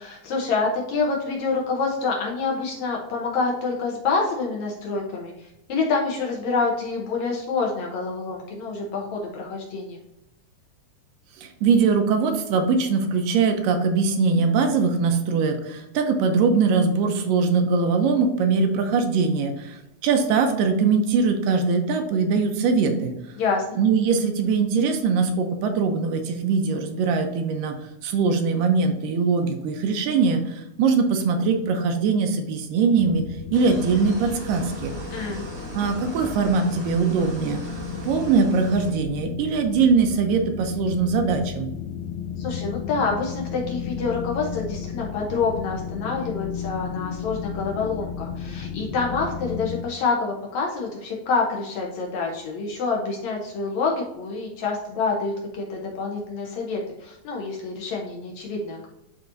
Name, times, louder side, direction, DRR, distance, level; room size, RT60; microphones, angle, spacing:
voice 1, 0.0-10.0 23.4-23.8 35.1-35.5 42.4-58.9, left 4 dB, 70° left, -1 dB, 1.9 m, -27 dB
voice 2, 11.4-23.2 23.8-27.8 28.0-33.2 33.5-34.9 35.8-37.6 38.0-41.7, right 5 dB, 80° right, 5 dB, 2.4 m, -22 dB
sound 1, 33.0-49.8, left 7 dB, 90° left, 1.6 m, -34 dB
sound 2, 33.5-38.9, right 1 dB, 35° right, 1.4 m, -38 dB
11.5 x 4.1 x 2.6 m, 0.89 s
omnidirectional pair, 4.0 m